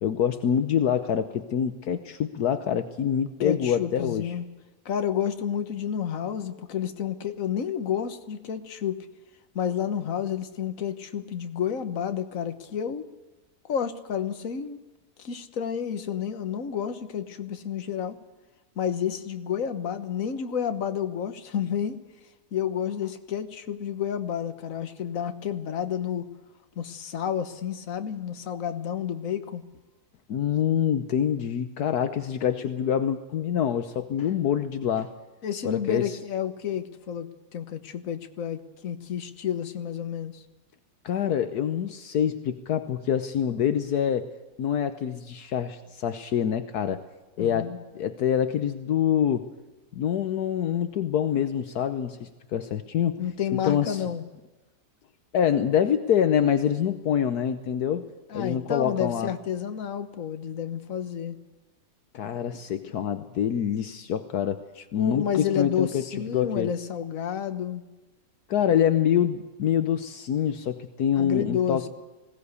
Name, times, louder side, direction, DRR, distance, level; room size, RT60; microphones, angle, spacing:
voice 1, 0.0-4.3 30.3-35.1 35.6-36.2 41.0-44.3 44.6-47.0 47.4-49.5 49.9-53.2 53.6-54.0 55.3-58.1 58.3-59.3 62.1-64.6 64.9-66.1 66.3-66.7 68.5-71.8, left 9 dB, 75° left, 9 dB, 1.4 m, -26 dB
voice 2, 3.4-4.4 4.8-9.1 9.5-13.0 13.6-14.8 15.2-18.2 18.8-22.0 22.5-26.3 26.8-29.6 35.4-37.3 37.5-40.4 47.4-47.8 53.2-54.3 58.3-61.4 65.0-67.8 71.2-71.9, left 8 dB, 55° left, 9 dB, 1.6 m, -30 dB
20.5 x 17.0 x 8.2 m, 1.2 s
omnidirectional pair, 1.7 m